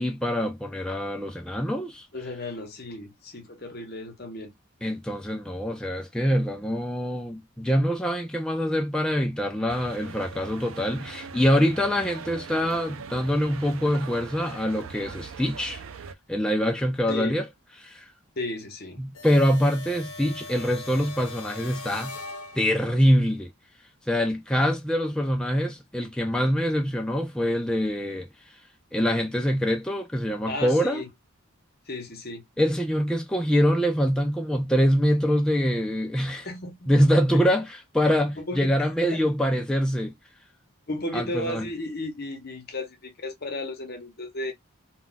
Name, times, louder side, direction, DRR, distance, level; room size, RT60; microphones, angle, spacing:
voice 1, 0.0-2.1 4.8-15.8 16.3-17.4 17.8-18.1 19.0-22.2 22.5-23.5 24.1-28.6 28.9-31.0 32.6-36.5 36.9-40.1 41.1-41.7, equal, 5° left, 0.3 m, -24 dB
voice 2, 2.1-4.5 17.1-17.4 18.4-19.0 30.5-31.1 31.9-32.4 36.4-37.1 38.4-38.7 40.9-44.5, left 1 dB, 45° left, 0.8 m, -34 dB
sound 1, 9.7-16.1, right 6 dB, 65° right, 0.4 m, -41 dB
sound 2, 19.1-23.0, left 3 dB, 80° left, 0.8 m, -40 dB
2.3 x 2.2 x 3.8 m
head